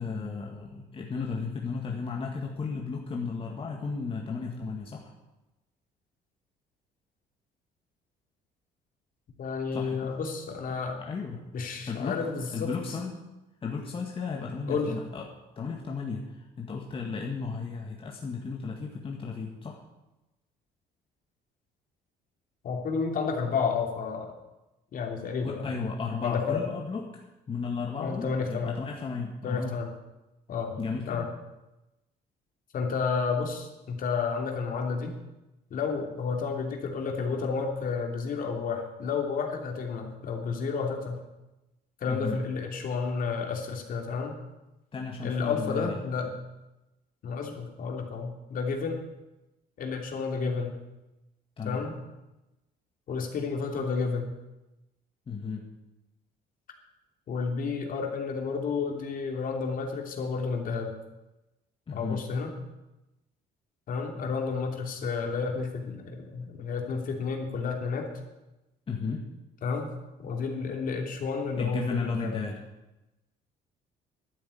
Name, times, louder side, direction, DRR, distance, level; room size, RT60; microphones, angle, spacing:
voice 1, 0.0-5.1 9.7-10.1 10.7-11.4 11.9-12.2 12.5-13.1 13.6-15.3 15.5-19.8 25.4-29.8 30.8-31.3 42.1-42.4 44.9-46.0 51.6-51.8 55.3-55.6 61.9-62.2 68.9-69.2 71.6-72.6, left 5 dB, 30° left, 0 dB, 1.8 m, -34 dB
voice 2, 9.4-11.0 11.5-12.7 14.7-14.9 22.6-24.3 24.9-25.7 26.2-26.6 28.0-28.8 29.4-29.9 30.5-30.8 31.1-31.3 32.7-35.1 35.7-41.2 42.0-44.4 45.2-46.3 47.2-49.0 49.8-50.7 51.6-51.9 53.1-54.3 57.3-60.9 61.9-62.5 63.9-68.1 69.6-69.9 70.2-72.3, left 5 dB, 55° left, 2 dB, 3.0 m, -31 dB
12.0 x 9.5 x 8.5 m, 1.0 s
cardioid pair, 110°, 17 cm